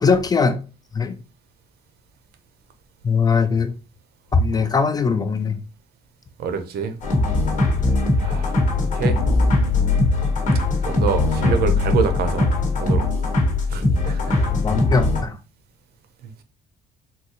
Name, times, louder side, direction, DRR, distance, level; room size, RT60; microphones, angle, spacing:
voice 1, 0.0-0.6 0.9-1.2 3.0-3.8 4.3-5.6 14.5-15.4, left 5 dB, 25° left, 0.3 m, -20 dB
voice 2, 6.4-7.0 8.2-9.2 10.8-12.5 12.8-13.1 13.7-14.4, right 6 dB, 65° right, 0.6 m, -26 dB
sound 1, 7.0-15.2, left 2 dB, 50° left, 1.2 m, -20 dB
3.8 x 2.3 x 2.8 m
cardioid pair, 110°, 17 cm